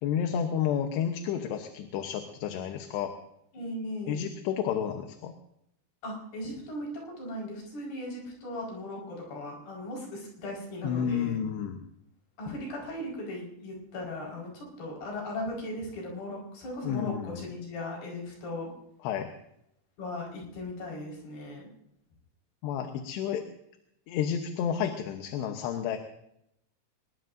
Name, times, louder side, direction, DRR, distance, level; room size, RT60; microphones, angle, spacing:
voice 1, 0.0-3.1 4.1-5.3 10.8-11.8 16.8-17.4 19.0-19.3 22.6-23.4 24.1-26.0, left 8 dB, 85° left, 5 dB, 3.2 m, -31 dB
voice 2, 3.5-4.2 6.0-11.4 12.4-18.7 20.0-21.7, left 1 dB, 70° left, -2 dB, 6.9 m, -38 dB
24.5 x 21.0 x 2.7 m, 0.78 s
omnidirectional pair, 4.8 m